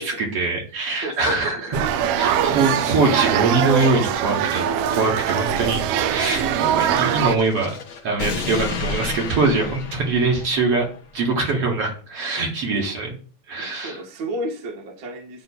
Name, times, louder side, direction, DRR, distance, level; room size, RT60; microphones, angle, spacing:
voice 1, 0.0-4.6 4.9-7.7 8.0-10.9 11.1-13.2 13.5-14.0, right 3 dB, 55° right, 0 dB, 2.8 m, -23 dB
voice 2, 1.0-1.8 13.6-15.4, right 1 dB, 35° right, -1 dB, 1.9 m, -33 dB
sound 1, 1.7-7.4, right 9 dB, 80° right, 1.3 m, -22 dB
sound 2, 6.2-11.0, left 4 dB, 55° left, 1.7 m, -32 dB
9.5 x 3.7 x 7.1 m, 0.39 s
omnidirectional pair, 3.4 m